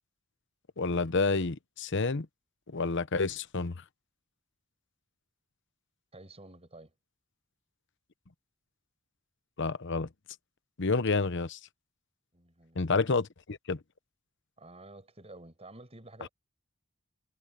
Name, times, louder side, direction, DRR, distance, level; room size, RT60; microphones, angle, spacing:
voice 1, 0.8-2.3 2.7-3.8 9.6-10.1 10.8-11.6 12.8-13.8 16.2-16.3, left 4 dB, 60° left, 0.9 m, -29 dB
voice 2, 6.1-6.9 12.3-13.2 14.6-16.3, right 2 dB, 30° right, 6.7 m, -51 dB
head